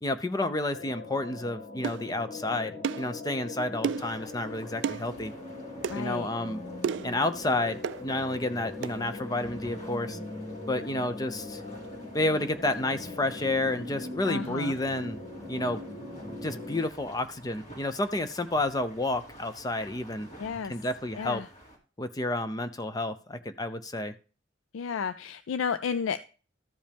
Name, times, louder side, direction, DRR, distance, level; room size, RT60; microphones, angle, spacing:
voice 1, 0.0-5.3 5.9-6.6 7.0-10.2 10.7-11.6 12.1-15.2 15.5-15.8 16.4-20.3 20.7-21.4 22.0-24.1, left 2 dB, 20° left, 10 dB, 0.5 m, -30 dB
sound 1, 0.7-16.9, left 2 dB, 50° left, 2.2 m, -41 dB
sound 2, 1.8-2.0 2.8-3.1 3.8-4.1 4.8-5.0 5.8-6.0 6.8-7.2 7.8-8.0 8.8-9.0, right 7 dB, 65° right, 0.3 m, -31 dB
sound 3, 3.9-21.8, right 1 dB, 35° left, 2.4 m, -51 dB
voice 2, 5.9-6.3 14.3-14.8 20.4-20.7 21.2-21.5 24.7-26.3, left 6 dB, 85° left, 13 dB, 0.4 m, -32 dB
13.5 x 5.1 x 3.5 m, 0.36 s
head